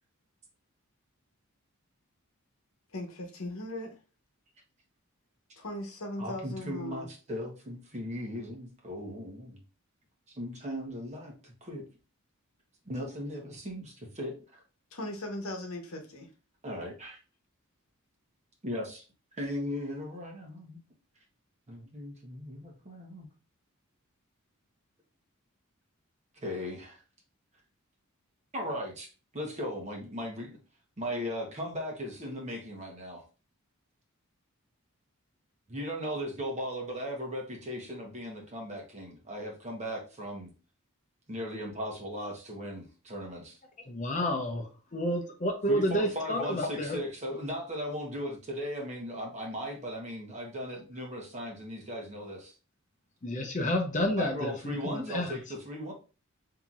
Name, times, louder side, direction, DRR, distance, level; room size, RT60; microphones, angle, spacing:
voice 1, 2.9-3.9 5.6-7.1 14.9-16.3, left 1 dB, 70° left, 0.9 m, -38 dB
voice 2, 6.2-9.6 10.4-11.8 12.9-13.4 13.7-13.8 14.2-14.6 16.6-17.2 18.6-19.0 19.3-20.8 21.7-23.3 26.4-27.0 28.5-29.1 29.3-30.6 31.0-33.2 35.7-40.5 41.3-43.6 45.7-52.5 54.2-55.9, equal, 30° right, 1.0 m, -37 dB
voice 3, 43.9-47.0 53.2-55.4, left 1 dB, 35° left, 0.7 m, -30 dB
5.6 x 2.8 x 2.4 m
head